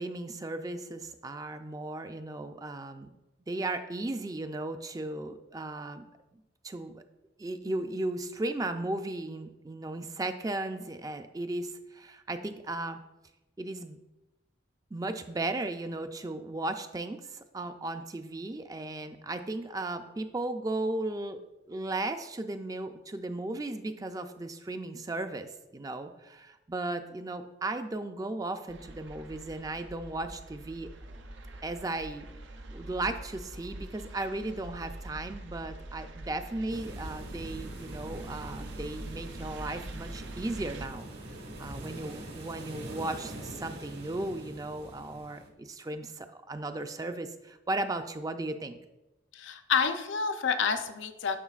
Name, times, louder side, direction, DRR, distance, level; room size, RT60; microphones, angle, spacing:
voice 1, 0.0-3.1 3.5-6.0 6.6-7.0 7.4-13.0 13.6-14.0 14.9-21.4 21.7-30.9 31.6-32.3 32.7-41.1 41.6-48.8, right 2 dB, 20° right, 8 dB, 0.3 m, -36 dB
sound 1, 28.7-40.9, right 1 dB, 75° right, 0.7 m, -44 dB
sound 2, 36.7-45.5, right 1 dB, 55° right, 1.3 m, -44 dB
voice 2, 49.3-51.4, left 6 dB, 75° left, 8 dB, 0.6 m, -29 dB
11.0 x 5.9 x 2.4 m, 0.99 s
head